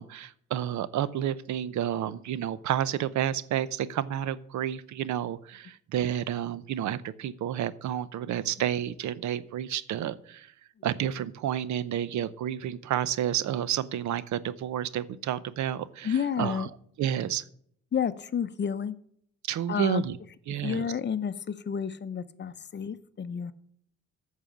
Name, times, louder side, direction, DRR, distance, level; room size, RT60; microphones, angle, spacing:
voice 1, 0.0-10.5 10.8-16.7 17.0-17.4 19.5-20.2 20.5-20.8, right 10 dB, 70° right, 17 dB, 0.7 m, -30 dB
voice 2, 16.0-16.7 17.9-19.0 19.7-20.1 20.5-23.5, left 7 dB, 35° left, 14 dB, 0.7 m, -31 dB
9.0 x 6.5 x 7.1 m, 0.66 s
cardioid pair, 90°, 30 cm